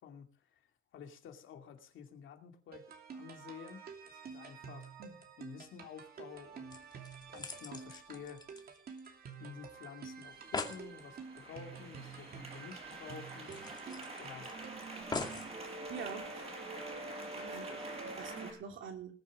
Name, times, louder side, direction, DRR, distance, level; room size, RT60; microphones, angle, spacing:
voice 1, 0.0-2.9 3.1-4.9 5.4-6.8 7.3-8.5 9.4-14.5, left 7 dB, 70° left, 5 dB, 2.4 m, -51 dB
sound 1, 2.7-15.0, right 6 dB, 50° right, 2.8 m, -50 dB
sound 2, 6.3-6.4 6.7-9.3 9.6-9.7 10.0-10.1 10.3-10.8 12.4-12.5 12.8-12.9 13.5-14.5 15.1-15.5 16.2-16.3, left 3 dB, 20° left, 2.2 m, -42 dB
sound 3, 10.4-18.5, right 2 dB, 30° right, 5.4 m, -45 dB
voice 2, 15.9-16.7 17.4-19.1, right 6 dB, 70° right, 3 dB, 3.2 m, -46 dB
19.5 x 7.4 x 6.3 m, 0.43 s
cardioid pair, 135°, 21 cm